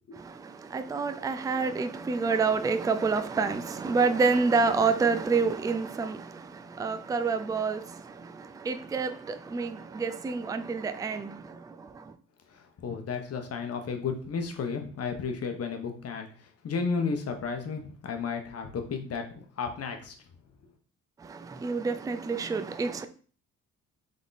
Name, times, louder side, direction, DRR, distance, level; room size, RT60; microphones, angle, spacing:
voice 1, 0.1-12.1 21.2-23.1, right 4 dB, 10° right, 0.4 m, -28 dB
voice 2, 12.5-16.3 16.6-20.1, left 5 dB, 55° left, 1.0 m, -33 dB
3.8 x 3.5 x 4.0 m
cardioid pair, 90°, 30 cm